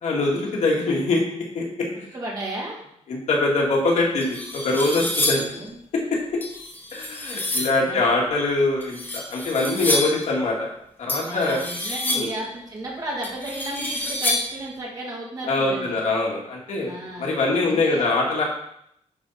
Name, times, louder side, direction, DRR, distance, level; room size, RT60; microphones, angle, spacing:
voice 1, 0.0-1.9 3.1-5.5 6.9-10.7 11.0-11.6 12.1-12.3 15.4-16.9 17.2-18.4, left 2 dB, 65° left, -2 dB, 2.0 m, -23 dB
voice 2, 1.9-2.8 5.5-5.8 7.5-8.1 11.1-16.0 16.8-17.3 17.7-18.1, right 1 dB, 30° right, -4 dB, 2.5 m, -34 dB
sound 1, 3.7-3.8 4.2-5.6 6.4-7.8 8.8-10.3 11.1-12.5 13.2-14.6, left 1 dB, 15° left, 1.2 m, -28 dB
10.0 x 4.6 x 4.1 m, 0.73 s
wide cardioid pair, 160°, 13 cm